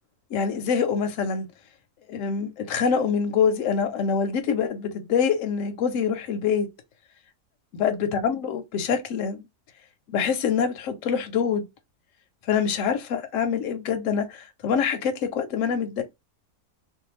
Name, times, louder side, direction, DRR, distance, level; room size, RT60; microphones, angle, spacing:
voice 1, 0.3-1.5 2.1-6.7 7.7-9.5 10.1-11.7 12.5-16.0, left 6 dB, 60° left, 0.9 m, -25 dB
2.7 x 2.2 x 2.9 m
omnidirectional pair, 1.8 m